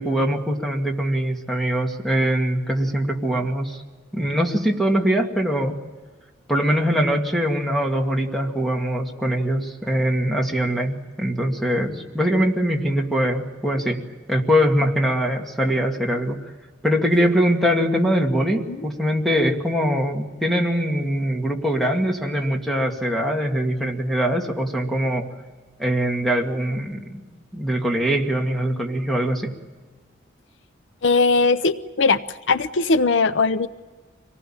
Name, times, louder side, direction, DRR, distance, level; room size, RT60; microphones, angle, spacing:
voice 1, 0.0-3.8 4.1-5.7 6.5-14.0 14.3-16.4 16.8-25.3 25.8-27.2 27.5-29.5, equal, ahead, 1 dB, 2.2 m, -22 dB
voice 2, 31.0-32.2 32.5-33.7, left 3 dB, 70° left, 13 dB, 0.7 m, -19 dB
25.5 x 19.0 x 8.8 m, 1.4 s
head